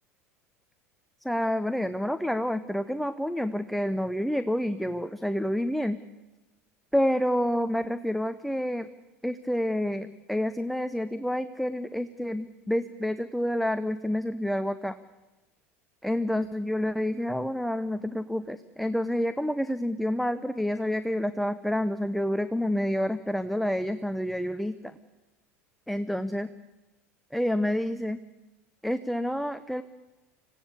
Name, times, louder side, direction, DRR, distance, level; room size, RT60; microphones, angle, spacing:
voice 1, 1.2-6.0 6.9-8.9 9.2-15.0 16.0-24.9 25.9-26.5 27.3-28.2 28.8-29.8, equal, ahead, 12 dB, 0.8 m, -28 dB
25.5 x 16.5 x 8.3 m, 1.1 s
figure-of-eight pair, 75°, 8 cm